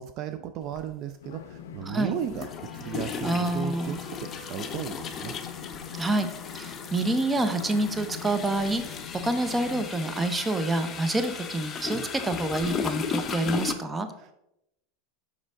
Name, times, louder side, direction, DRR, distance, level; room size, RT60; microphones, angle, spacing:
voice 1, 0.0-2.5 2.7-5.3 11.9-12.1 14.2-14.3, right 9 dB, 50° right, 10 dB, 0.3 m, -35 dB
sound 1, 0.7-0.8 2.2-13.7, left 6 dB, 30° left, 0.6 m, -36 dB
sound 2, 1.2-9.9, left 8 dB, 80° left, 0.5 m, -43 dB
sound 3, 1.9-7.7, left 4 dB, 10° left, 1.8 m, -51 dB
voice 2, 1.9-2.2 3.2-4.0 5.9-6.3 6.5-8.8 9.2-14.1, right 2 dB, 15° right, 9 dB, 0.7 m, -27 dB
5.3 x 5.1 x 3.7 m, 0.85 s
hypercardioid pair, 105°, 0 cm